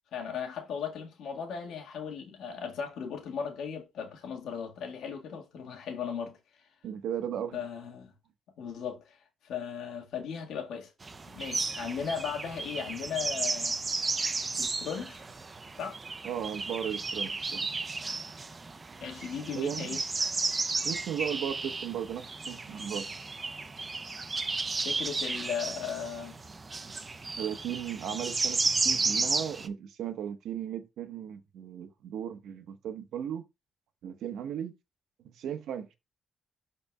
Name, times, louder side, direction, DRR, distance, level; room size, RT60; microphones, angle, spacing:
voice 1, 0.1-6.4 7.5-8.1 8.6-9.2 9.4-10.9 11.3-13.9 14.5-15.2 15.8-16.0 19.0-20.0 24.8-26.4, left 7 dB, 75° left, 1.7 m, -37 dB
voice 2, 6.8-7.6 16.2-17.7 19.5-20.0 20.8-23.0 26.9-27.0 27.4-33.4 34.0-34.7 35.3-35.9, right 9 dB, 75° right, 1.2 m, -36 dB
sound 1, 11.0-29.7, right 3 dB, 30° right, 0.7 m, -33 dB
12.5 x 4.3 x 2.3 m
cardioid pair, 90°, 0 cm